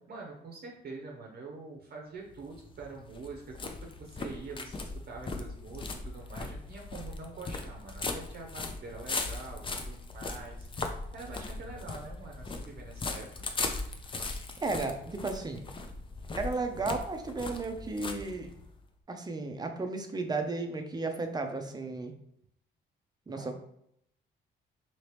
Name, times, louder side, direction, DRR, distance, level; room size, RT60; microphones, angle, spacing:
voice 1, 0.1-13.3 23.3-23.5, right 3 dB, 50° right, 0 dB, 0.7 m, -45 dB
sound 1, 2.3-18.8, left 3 dB, 25° left, 0.5 m, -39 dB
voice 2, 14.6-15.6 16.3-18.5 19.1-22.1 23.3-23.5, right 3 dB, 20° right, 5 dB, 0.6 m, -34 dB
2.9 x 2.9 x 3.2 m, 0.73 s
cardioid pair, 90°, 20 cm